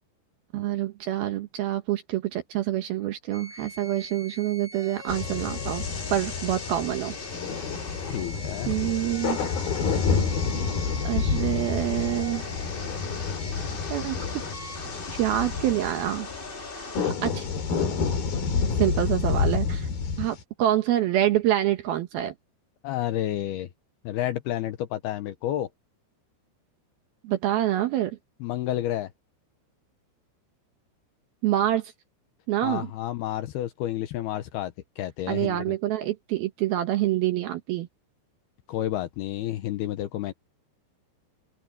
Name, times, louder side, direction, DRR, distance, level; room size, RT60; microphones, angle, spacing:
voice 1, 0.5-5.8 6.1-7.1 8.7-9.4 11.0-12.4 13.9-14.2 15.1-16.3 17.2-17.5 18.8-19.9 20.2-22.3 27.2-28.2 31.4-31.9 32.5-32.9 35.3-37.9, right 13 dB, 75° right, 2.3 m, -26 dB
sound 1, 3.3-17.1, left 1 dB, 15° left, 1.8 m, -41 dB
sound 2, 5.1-20.4, left 5 dB, 50° left, 5.1 m, -29 dB
voice 2, 8.1-8.7 22.8-23.7 24.0-25.7 28.4-29.1 32.6-35.8 38.7-40.3, left 13 dB, 80° left, 2.3 m, -30 dB
open air
omnidirectional pair, 5.7 m